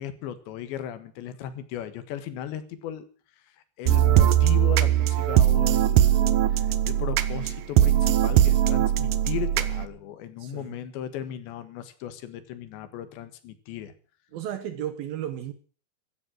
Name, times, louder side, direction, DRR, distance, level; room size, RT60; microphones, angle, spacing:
voice 1, 0.0-3.1 3.8-13.9, left 10 dB, 80° left, 3.7 m, -36 dB
sound 1, 3.9-9.9, right 12 dB, 90° right, 1.8 m, -20 dB
voice 2, 10.4-10.7 14.3-15.5, right 10 dB, 70° right, 2.6 m, -34 dB
16.0 x 13.5 x 6.2 m
omnidirectional pair, 5.1 m